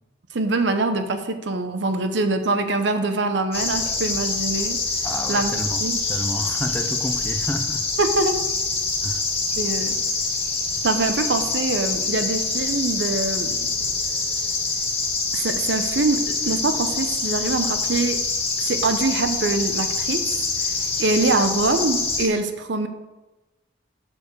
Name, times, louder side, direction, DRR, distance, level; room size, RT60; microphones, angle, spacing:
voice 1, 0.3-4.8 5.3-6.0 8.0-8.4 9.6-10.0 10.8-13.7 15.3-18.2 18.6-20.7 21.0-22.9, right 3 dB, 70° right, 8 dB, 0.8 m, -24 dB
sound 1, 3.5-22.3, left 3 dB, 30° left, 1.5 m, -25 dB
voice 2, 5.0-5.8 6.1-7.8 9.0-9.2, left 1 dB, 10° left, 6 dB, 0.5 m, -30 dB
7.1 x 4.7 x 6.6 m, 1.1 s
head